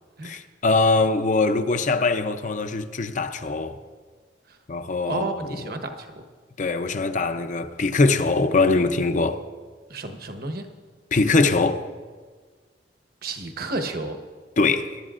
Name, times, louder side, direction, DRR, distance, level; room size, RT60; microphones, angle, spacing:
voice 1, 0.2-3.8 4.7-5.3 6.6-9.4 11.1-11.9 14.6-15.0, left 3 dB, 45° left, 0.6 m, -22 dB
voice 2, 5.0-6.2 9.9-10.7 13.2-14.2, right 2 dB, 55° right, 1.1 m, -31 dB
22.5 x 11.5 x 2.5 m
head